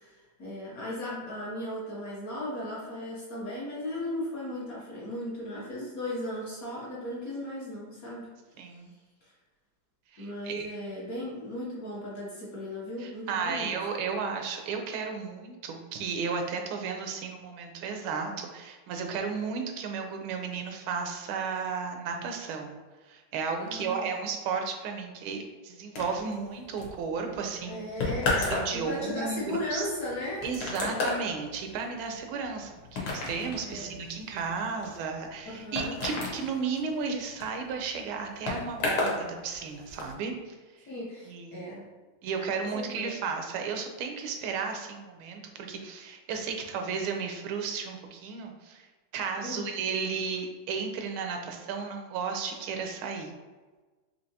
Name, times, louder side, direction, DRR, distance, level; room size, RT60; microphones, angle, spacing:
voice 1, 0.0-8.3 10.2-13.8 23.6-24.1 27.6-30.5 33.6-34.0 35.4-36.0 40.9-41.9 42.6-43.2 49.4-49.8, left 1 dB, 55° left, -6 dB, 1.1 m, -36 dB
voice 2, 8.6-8.9 10.1-10.7 13.0-22.8 23.1-27.8 28.5-29.9 30.4-40.3 41.3-41.7 42.2-48.8 49.1-53.3, right 5 dB, 85° right, 4 dB, 1.4 m, -34 dB
sound 1, 25.9-39.2 39.5-40.1, left 2 dB, 90° left, 1.8 m, -34 dB
4.5 x 2.7 x 2.7 m, 1.3 s
omnidirectional pair, 2.2 m